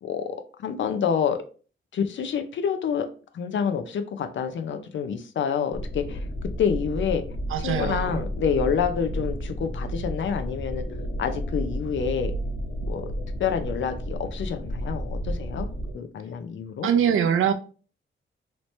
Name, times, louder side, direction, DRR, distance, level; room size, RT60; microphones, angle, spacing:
voice 1, 0.0-1.4 1.9-3.1 3.3-6.2 6.6-7.2 7.6-10.9 11.2-12.3 12.9-13.1 13.4-15.7 15.9-16.9, left 7 dB, 70° left, 0.5 m, -27 dB
sound 1, 5.7-15.9, equal, 50° left, 1.1 m, -32 dB
voice 2, 7.5-8.2 16.8-17.5, right 8 dB, 85° right, 0.5 m, -23 dB
3.1 x 2.8 x 3.1 m
cardioid pair, 105°, 20 cm